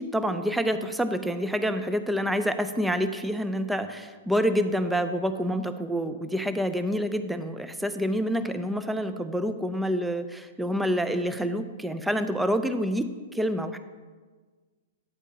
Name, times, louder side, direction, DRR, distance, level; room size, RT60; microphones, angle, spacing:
voice 1, 0.0-13.8, equal, 5° right, 10 dB, 0.5 m, -27 dB
8.7 x 8.0 x 2.8 m, 1.4 s
figure-of-eight pair, 110°, 0 cm